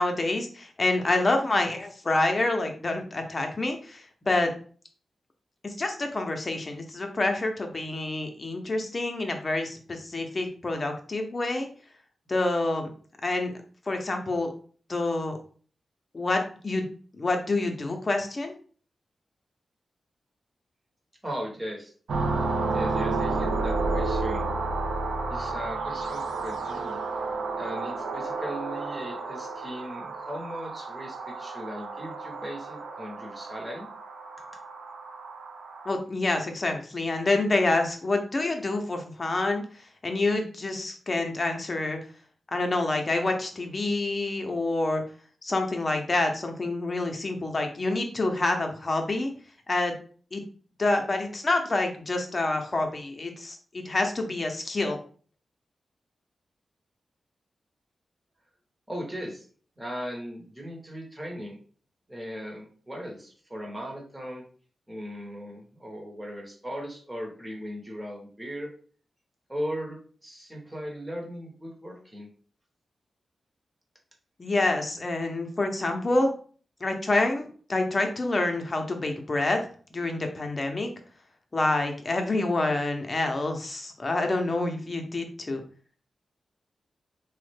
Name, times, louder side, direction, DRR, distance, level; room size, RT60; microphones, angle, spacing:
voice 1, 0.0-4.5 5.6-11.7 12.3-12.9 13.2-13.5 13.9-14.5 14.9-15.4 16.1-16.8 17.1-18.6 35.9-39.6 40.0-42.0 42.5-45.0 45.4-49.3 49.7-49.9 50.3-50.4 50.8-55.0 74.4-76.3 76.8-79.6 79.9-80.9 81.5-85.6, left 2 dB, 30° left, 4 dB, 0.6 m, -27 dB
voice 2, 21.2-21.9 22.6-24.5 25.3-27.3 27.6-33.9 58.9-59.5 59.8-61.6 62.1-64.4 64.9-68.7 69.5-72.3, equal, 10° right, -1 dB, 0.8 m, -38 dB
sound 1, 22.1-35.9, right 3 dB, 85° right, 0.4 m, -31 dB
3.4 x 2.1 x 3.3 m, 0.43 s
wide cardioid pair, 120°, 0 cm